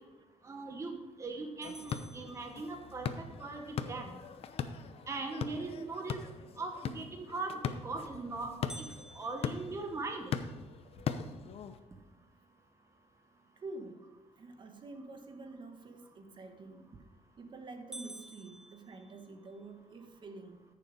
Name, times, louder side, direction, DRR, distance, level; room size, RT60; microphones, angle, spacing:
voice 1, 0.4-3.1 3.4-4.2 5.1-6.2 6.6-8.5 8.8-8.9 9.1-10.3, right 3 dB, 25° right, 4 dB, 1.1 m, -40 dB
sound 1, 1.6-11.8, left 7 dB, 55° left, 0.8 m, -40 dB
sound 2, 1.6-3.2 8.7-10.9 11.4-11.5 12.0-12.1 12.7-13.0 16.7-17.1 17.5-17.6 17.9-19.7, right 1 dB, 5° right, 0.5 m, -52 dB
voice 2, 13.6-16.9 17.4-20.6, right 3 dB, 40° right, 6 dB, 1.3 m, -48 dB
14.0 x 7.0 x 5.2 m, 1.2 s
cardioid pair, 130°, 12 cm